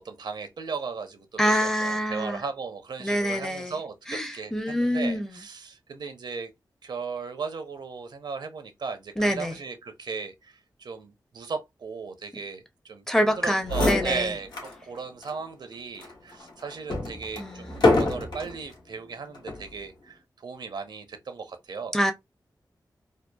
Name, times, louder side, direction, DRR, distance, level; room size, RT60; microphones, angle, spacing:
voice 1, 0.0-6.5 6.8-22.0, right 5 dB, 80° right, 0.6 m, -36 dB
voice 2, 1.4-2.4 3.0-3.7 4.1-5.3 9.2-9.6 13.1-14.3 17.4-17.8 21.9-22.1, equal, 5° left, 0.5 m, -26 dB
sound 1, 13.3-13.4 13.6-14.8 15.2-15.3 16.0-18.6 19.3-19.7, left 2 dB, 80° left, 1.0 m, -26 dB
2.8 x 2.3 x 2.2 m
wide cardioid pair, 125°, 7 cm